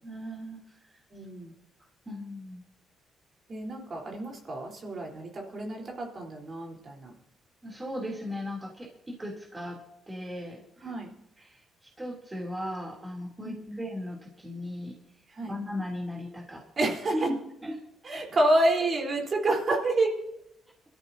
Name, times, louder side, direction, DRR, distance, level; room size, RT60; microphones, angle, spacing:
voice 1, 0.0-0.6 0.9-1.0 2.0-2.6 7.6-9.8 10.1-10.9 11.4-15.0 15.4-17.4 17.6-17.8, equal, 15° right, -1 dB, 3.1 m, -37 dB
voice 2, 1.1-1.5 3.5-7.1 10.8-11.1 13.4-13.8 15.3-15.5 16.8-17.3 18.0-20.1, right 1 dB, 45° right, 0 dB, 3.8 m, -28 dB
22.0 x 13.5 x 2.8 m, 0.80 s
cardioid pair, 90°, 0 cm